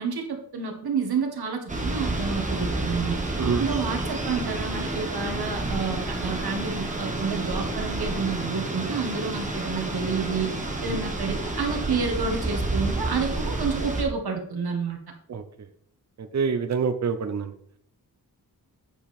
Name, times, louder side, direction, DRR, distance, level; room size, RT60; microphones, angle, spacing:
voice 1, 0.0-3.2 3.6-10.5 10.8-15.0, right 5 dB, 85° right, 3 dB, 1.5 m, -29 dB
sound 1, 1.7-14.0, right 2 dB, 20° right, 1.3 m, -29 dB
voice 2, 16.2-17.5, right 5 dB, 50° right, 9 dB, 0.7 m, -26 dB
8.5 x 5.2 x 4.3 m, 0.67 s
wide cardioid pair, 155°, 37 cm